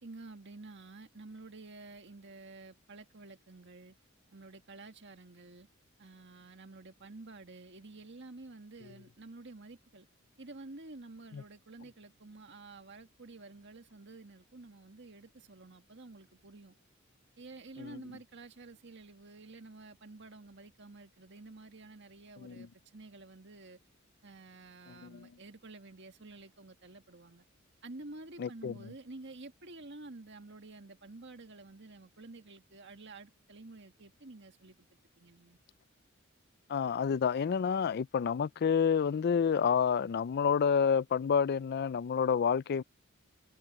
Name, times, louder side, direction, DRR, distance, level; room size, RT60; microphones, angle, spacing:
voice 1, 0.0-3.9 4.3-5.7 6.0-10.1 10.4-16.7 17.4-23.8 24.2-27.5 27.8-35.6, right 2 dB, 60° right, 1.8 m, -50 dB
voice 2, 24.9-25.3 28.4-28.7 36.7-42.8, left 7 dB, 50° left, 0.4 m, -29 dB
head